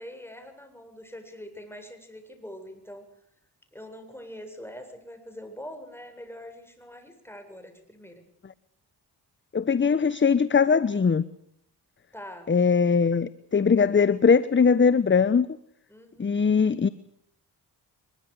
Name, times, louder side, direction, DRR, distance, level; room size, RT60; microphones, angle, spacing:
voice 1, 0.0-3.0 3.7-8.2 12.1-12.5 15.9-16.4, equal, 5° left, 6 dB, 8.0 m, -43 dB
voice 2, 9.5-11.2 12.5-15.5 16.2-16.9, left 5 dB, 30° left, 16 dB, 1.1 m, -21 dB
23.0 x 22.5 x 6.9 m, 0.72 s
supercardioid pair, 60°, 41 cm